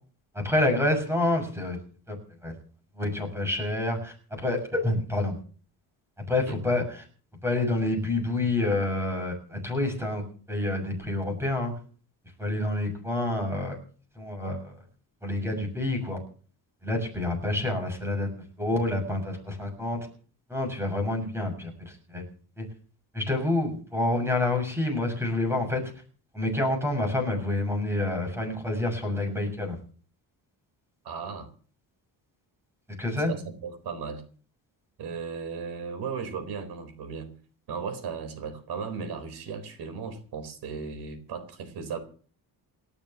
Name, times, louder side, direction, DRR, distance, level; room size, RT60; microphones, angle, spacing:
voice 1, 0.4-1.8 2.1-2.2 2.4-2.5 3.0-4.1 4.4-5.3 6.3-6.8 7.4-11.7 12.4-13.8 14.2-14.7 15.2-16.2 16.8-20.0 20.5-22.2 22.6-22.7 23.1-25.8 26.3-29.7 33.0-33.3, left 2 dB, 5° right, 4 dB, 6.7 m, -28 dB
voice 2, 31.0-31.5 33.2-34.2 35.0-37.3 37.7-42.0, right 5 dB, 80° right, 7 dB, 4.3 m, -36 dB
28.5 x 13.0 x 3.0 m, 0.41 s
cardioid pair, 155°, 38 cm